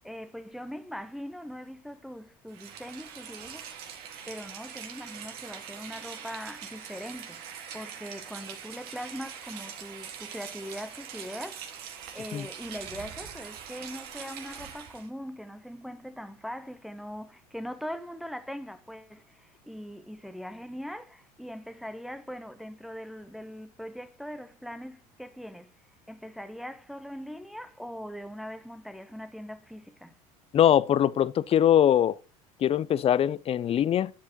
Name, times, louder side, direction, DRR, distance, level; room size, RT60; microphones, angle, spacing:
voice 1, 0.0-3.7 4.3-25.7 26.1-30.2, equal, ahead, 0.7 m, -41 dB
Rain, 2.5-15.1, right 8 dB, 60° right, 1.9 m, -43 dB
voice 2, 30.5-32.2 32.6-34.1, left 10 dB, 30° left, 0.5 m, -22 dB
11.0 x 7.5 x 3.0 m
hypercardioid pair, 80°, 18 cm